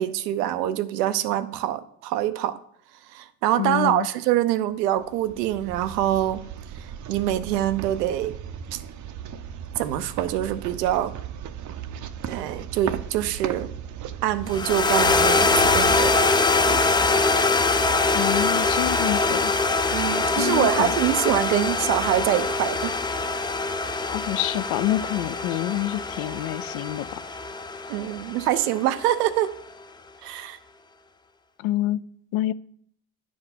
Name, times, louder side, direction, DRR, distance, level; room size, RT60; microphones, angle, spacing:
voice 1, 0.0-2.5 3.1-6.4 7.1-8.3 8.7-8.8 9.8-11.1 12.3-13.7 14.2-16.3 16.7-16.8 19.9-23.0 27.9-29.5 30.2-30.6, right 12 dB, 90° right, 13 dB, 0.7 m, -25 dB
voice 2, 3.6-4.1 18.1-19.5 20.3-20.9 24.1-27.2 31.6-32.0 32.3-32.5, left 15 dB, 65° left, 17 dB, 0.5 m, -27 dB
sound 1, 4.9-17.0, right 9 dB, 40° right, 0.6 m, -37 dB
sound 2, 14.5-28.9, left 3 dB, 10° left, 0.3 m, -23 dB
9.7 x 4.8 x 4.1 m, 0.66 s
supercardioid pair, 85°, 46 cm